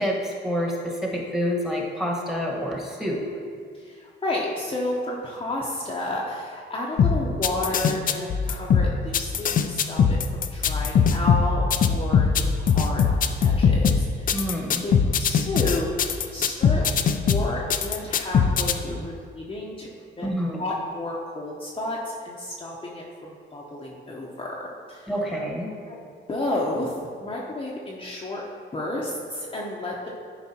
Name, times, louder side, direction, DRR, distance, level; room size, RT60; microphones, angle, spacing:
voice 1, 0.0-3.2 14.3-14.9 20.2-20.6 25.1-25.7, equal, ahead, -2 dB, 1.4 m, -27 dB
voice 2, 3.7-14.5 14.8-19.9 20.2-20.3 20.6-22.0 22.2-23.1 23.5-25.1 25.9-26.0 26.3-28.4 28.7-30.1, left 1 dB, 25° left, -4 dB, 0.8 m, -31 dB
sound 1, 7.0-18.7, left 6 dB, 45° left, 0.4 m, -21 dB
9.9 x 4.9 x 2.9 m, 2.1 s
cardioid pair, 90°, 20 cm